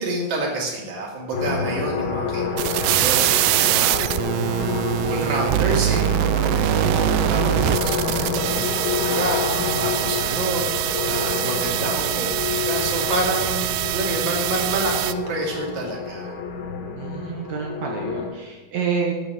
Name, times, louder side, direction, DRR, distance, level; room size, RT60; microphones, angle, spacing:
voice 1, 0.0-2.4 2.7-4.2 5.0-9.4 9.8-10.6 11.0-16.3, right 2 dB, 45° right, -2 dB, 3.3 m, -28 dB
sound 1, 1.3-18.3, left 5 dB, 80° left, 4.2 m, -28 dB
sound 2, 2.6-15.1, right 15 dB, 85° right, 2.9 m, -23 dB
voice 2, 3.5-3.9 16.9-19.1, right 5 dB, 70° right, 0 dB, 1.7 m, -28 dB
10.0 x 8.2 x 7.4 m, 1.2 s
omnidirectional pair, 5.2 m